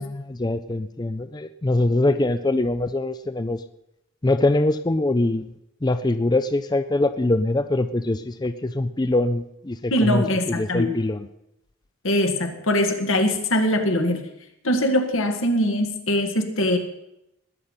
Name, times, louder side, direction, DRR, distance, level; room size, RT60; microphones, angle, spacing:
voice 1, 0.0-3.6 4.2-5.5 5.8-11.3, left 2 dB, 20° left, 11 dB, 0.4 m, -23 dB
voice 2, 9.9-10.9 12.0-14.2 14.6-16.8, left 1 dB, 85° left, 5 dB, 2.0 m, -22 dB
20.5 x 8.1 x 5.7 m, 0.85 s
head